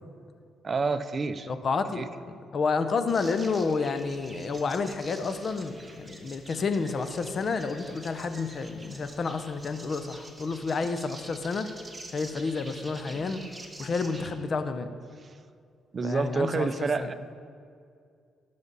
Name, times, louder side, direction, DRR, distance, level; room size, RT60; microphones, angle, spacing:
voice 1, 0.6-1.5 2.0-2.1 15.2-15.3 15.9-17.1, right 4 dB, 40° right, 12 dB, 0.5 m, -28 dB
voice 2, 1.5-11.7 12.1-13.4 13.8-14.9 16.0-17.1, left 4 dB, 45° left, 9 dB, 0.8 m, -30 dB
sound 1, 3.1-14.3, right 2 dB, 20° right, 1.3 m, -47 dB
18.0 x 6.9 x 4.1 m, 2.3 s
cardioid pair, 90°, 0 cm